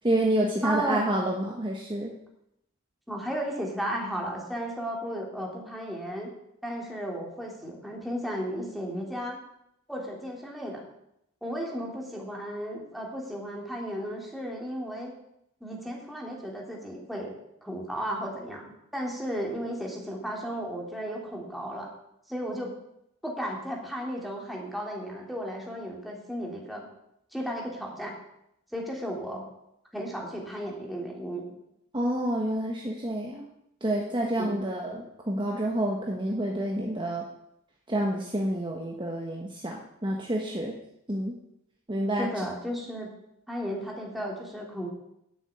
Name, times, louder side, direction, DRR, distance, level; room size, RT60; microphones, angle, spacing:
voice 1, 0.0-2.1 31.9-33.5 33.8-37.2 37.9-40.7 41.1-41.3 41.9-42.3, right 1 dB, 25° right, -1 dB, 1.3 m, -28 dB
voice 2, 0.6-1.0 3.1-6.3 6.6-9.4 9.9-10.8 11.4-15.1 15.6-17.3 17.6-21.9 22.3-22.7 23.2-26.9 27.3-28.1 28.7-29.4 29.9-31.5 34.4-34.5 42.2-43.1 43.5-44.9, equal, ahead, -2 dB, 2.9 m, -34 dB
10.5 x 7.3 x 8.3 m, 0.79 s
head